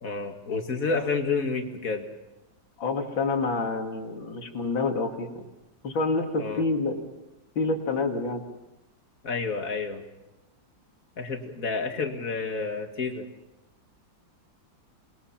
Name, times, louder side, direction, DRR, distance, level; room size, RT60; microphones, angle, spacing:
voice 1, 0.0-2.1 6.4-6.6 9.2-10.0 11.2-13.3, left 4 dB, 45° left, 4 dB, 2.5 m, -29 dB
voice 2, 2.8-5.5 5.8-7.0 7.6-8.4, left 3 dB, 85° left, 3 dB, 3.0 m, -28 dB
27.5 x 21.0 x 5.9 m, 0.99 s
omnidirectional pair, 2.1 m